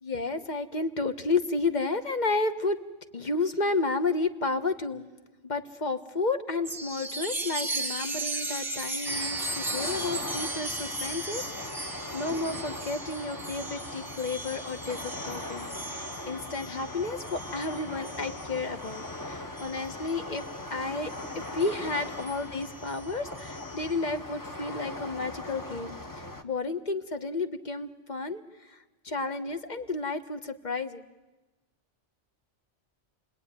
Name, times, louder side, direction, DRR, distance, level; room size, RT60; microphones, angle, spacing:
voice 1, 0.0-2.8 3.1-5.1 5.4-31.0, left 3 dB, 40° left, 8 dB, 1.5 m, -32 dB
Chime, 6.6-20.6 21.1-23.9, right 2 dB, ahead, 2.8 m, -37 dB
sound 1, 9.1-26.4, left 1 dB, 15° left, 1.2 m, -40 dB
30.0 x 20.0 x 9.8 m, 1.1 s
omnidirectional pair, 1.2 m